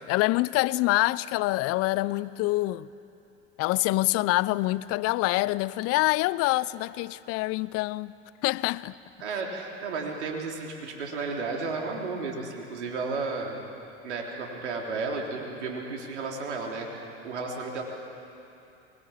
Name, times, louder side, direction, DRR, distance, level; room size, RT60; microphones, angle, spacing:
voice 1, 0.1-2.9 3.6-8.1 8.4-8.9, left 19 dB, 45° left, 0.6 m, -26 dB
voice 2, 9.2-13.6 14.0-16.9 17.2-17.8, right 4 dB, 80° right, 3.6 m, -33 dB
24.0 x 20.5 x 8.6 m
hypercardioid pair, 90°, 34 cm